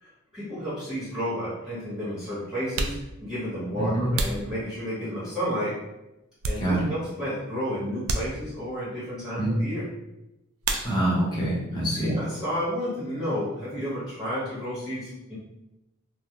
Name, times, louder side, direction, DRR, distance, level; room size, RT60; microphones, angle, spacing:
voice 1, 0.0-5.7 6.5-9.8 12.0-15.4, equal, 5° right, -11 dB, 1.0 m, -31 dB
sound 1, 1.9-2.0 2.6-5.2 5.8-7.1 7.4-7.6 8.0-8.8 10.6-11.4 11.7-12.3 12.6-14.8, right 2 dB, 75° right, 0.3 m, -34 dB
voice 2, 3.7-4.1 6.6-6.9 9.4-9.6 10.8-12.1, right 1 dB, 20° left, -6 dB, 0.7 m, -25 dB
2.3 x 2.0 x 2.8 m, 0.94 s
head